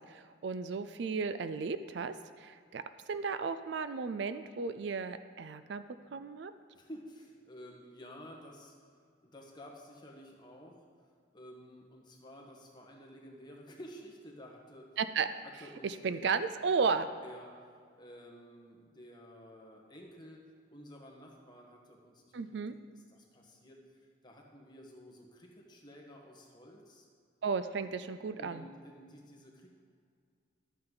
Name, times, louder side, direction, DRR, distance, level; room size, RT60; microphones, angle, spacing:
voice 1, 0.1-5.8 6.1-6.5 15.0-15.3 15.8-17.1 22.3-22.7 27.4-28.7, right 5 dB, 60° right, 11 dB, 0.4 m, -34 dB
voice 2, 6.7-8.7 9.2-10.8 11.3-14.9 15.4-16.2 17.2-17.5 18.0-20.4 20.7-22.6 22.9-27.1 28.4-29.7, equal, 25° left, 0 dB, 1.3 m, -52 dB
12.5 x 8.7 x 3.9 m, 2.2 s
head